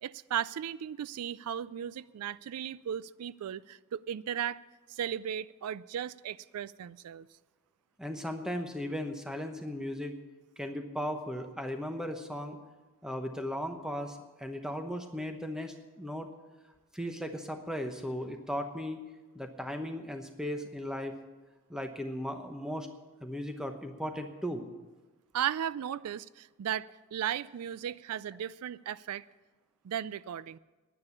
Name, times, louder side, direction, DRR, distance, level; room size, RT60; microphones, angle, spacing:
voice 1, 0.0-4.6 4.9-7.3 25.3-29.2 29.8-30.6, right 9 dB, 90° right, 18 dB, 0.4 m, -36 dB
voice 2, 8.0-10.1 10.6-12.6 13.0-16.3 16.9-19.0 19.3-21.1 21.7-22.9 23.2-24.7, equal, 5° right, 5 dB, 0.9 m, -37 dB
10.0 x 9.8 x 9.6 m, 1.2 s
head